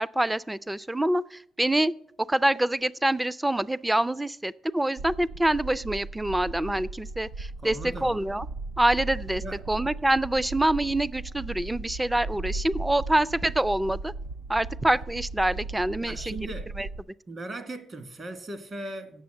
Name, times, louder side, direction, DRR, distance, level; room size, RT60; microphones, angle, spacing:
voice 1, 0.0-1.9 2.2-8.5 8.8-14.1 14.5-16.9, right 1 dB, 10° right, 0.4 m, -26 dB
sound 1, 5.0-17.0, right 3 dB, 90° right, 0.4 m, -37 dB
voice 2, 7.6-8.1 9.4-9.6 16.0-16.7 17.3-19.2, right 2 dB, 40° right, 1.6 m, -38 dB
8.1 x 6.2 x 7.7 m
cardioid pair, 90°, 0 cm